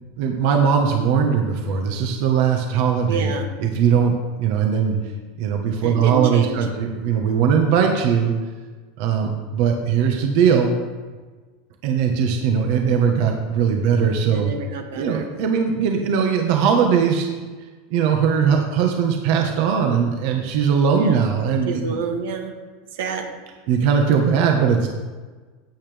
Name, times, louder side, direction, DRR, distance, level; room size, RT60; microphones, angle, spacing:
voice 1, 0.2-3.3 3.6-4.1 4.4-5.0 5.4-8.3 9.0-10.7 11.8-14.5 14.9-17.3 17.9-22.0 23.7-24.9, right 7 dB, 60° right, 3 dB, 1.4 m, -19 dB
voice 2, 3.1-3.5 5.8-6.6 14.3-15.3 20.9-21.3 21.7-22.5 22.9-23.3, right 4 dB, 80° right, 4 dB, 1.6 m, -28 dB
15.5 x 9.1 x 3.5 m, 1.4 s
supercardioid pair, 140°, 0 cm